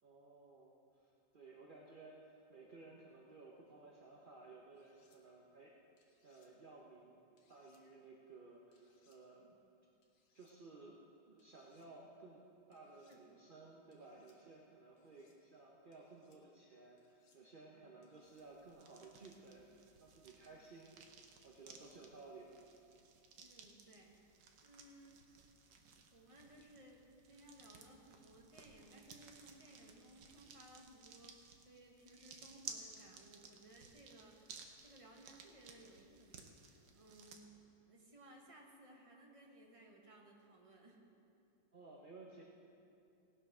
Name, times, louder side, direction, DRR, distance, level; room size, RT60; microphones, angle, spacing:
voice 1, 0.0-5.8 6.2-7.2 7.5-9.5 10.3-22.6 41.7-42.4, right 3 dB, 40° right, -3 dB, 0.8 m, -57 dB
sound 1, 4.7-5.2 6.0-6.5 7.4-7.8 8.7-9.2 10.0-10.5 11.4-11.9 12.7-13.2 13.9-14.4 15.0-15.4 15.9-16.4 17.0-17.4 18.0-18.5 19.0-19.4, left 4 dB, 85° left, 2.2 m, -77 dB
sound 2, 18.2-37.4, right 5 dB, 65° right, 1.5 m, -58 dB
voice 2, 23.4-25.5 26.1-41.0, right 1 dB, 20° right, -1 dB, 1.3 m, -61 dB
18.0 x 7.0 x 6.2 m, 2.7 s
omnidirectional pair, 2.1 m